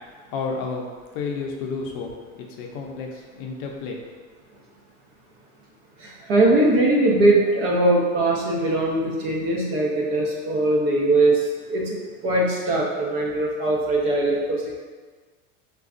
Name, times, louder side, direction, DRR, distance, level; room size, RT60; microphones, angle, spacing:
voice 1, 0.3-0.9 1.1-4.0, left 4 dB, 50° left, 1 dB, 0.5 m, -31 dB
voice 2, 6.0-12.0 12.2-14.7, right 2 dB, 60° right, -2 dB, 0.8 m, -21 dB
4.9 x 2.2 x 2.4 m, 1.4 s
supercardioid pair, 175°, 34 cm